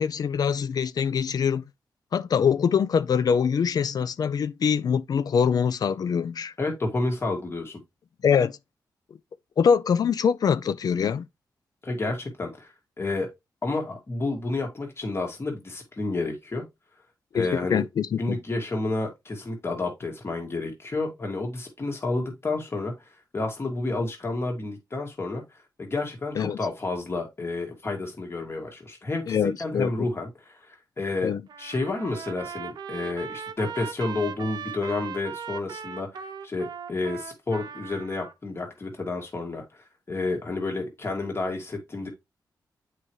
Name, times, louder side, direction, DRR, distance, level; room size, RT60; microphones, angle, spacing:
voice 1, 0.0-1.6 2.1-6.5 8.2-8.6 9.6-11.3 17.3-18.4 26.4-26.6 29.3-30.1 31.2-31.4, left 7 dB, 65° left, 0.4 m, -24 dB
voice 2, 6.6-7.8 11.8-12.7 13.0-13.3 13.6-16.6 17.3-17.8 18.2-25.4 25.8-31.3 31.6-42.1, left 2 dB, 35° left, 2.0 m, -30 dB
Trumpet, 31.5-38.3, right 7 dB, 75° right, 0.7 m, -38 dB
7.7 x 4.8 x 3.1 m
cardioid pair, 80°, 7 cm